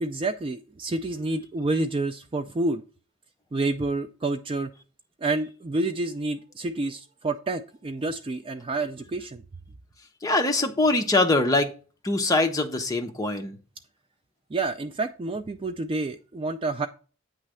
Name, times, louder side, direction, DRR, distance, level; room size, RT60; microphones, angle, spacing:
voice 1, 0.0-2.8 3.5-4.7 5.2-9.4 14.5-16.9, right 2 dB, 25° right, 0.3 m, -29 dB
voice 2, 10.2-11.7 12.0-13.6, left 2 dB, 15° left, 0.7 m, -23 dB
8.8 x 3.2 x 6.2 m
head